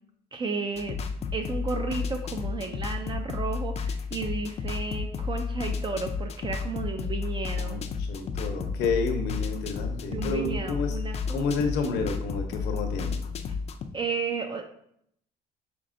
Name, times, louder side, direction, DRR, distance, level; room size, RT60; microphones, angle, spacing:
voice 1, 0.3-1.0 1.3-7.9 10.1-11.4 13.9-14.7, right 4 dB, 30° right, 5 dB, 0.4 m, -33 dB
sound 1, 0.8-13.9, left 5 dB, 40° left, 0.4 m, -32 dB
voice 2, 7.6-11.0 11.3-13.2, left 4 dB, 80° left, 5 dB, 0.7 m, -30 dB
5.2 x 3.3 x 2.5 m, 0.72 s
cardioid pair, 110°, 17 cm